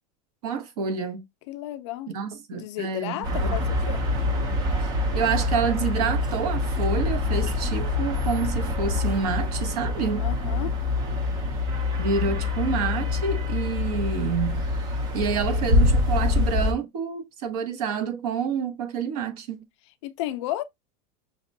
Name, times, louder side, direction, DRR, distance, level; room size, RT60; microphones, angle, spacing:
voice 1, 0.4-1.2 2.1-3.6 4.8-10.2 12.0-14.7 15.1-19.7, right 6 dB, 65° right, 1.0 m, -28 dB
voice 2, 1.5-2.1 2.5-4.0 10.2-10.8 20.0-20.6, left 14 dB, 45° left, 0.4 m, -33 dB
sound 1, 3.2-16.7, left 2 dB, 20° right, 0.4 m, -25 dB
5.8 x 2.2 x 2.6 m
supercardioid pair, 180°, 21 cm